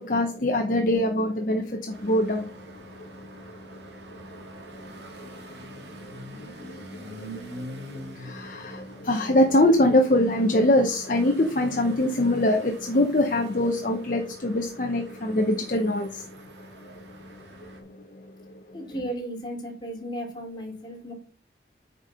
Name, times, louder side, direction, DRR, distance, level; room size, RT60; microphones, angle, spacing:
voice 1, 0.0-18.8, left 1 dB, 45° left, 0.8 m, -25 dB
sound 1, 1.9-17.8, right 1 dB, 85° right, 1.9 m, -45 dB
voice 2, 18.7-21.1, right 1 dB, 25° left, 2.9 m, -35 dB
8.8 x 5.3 x 4.3 m
head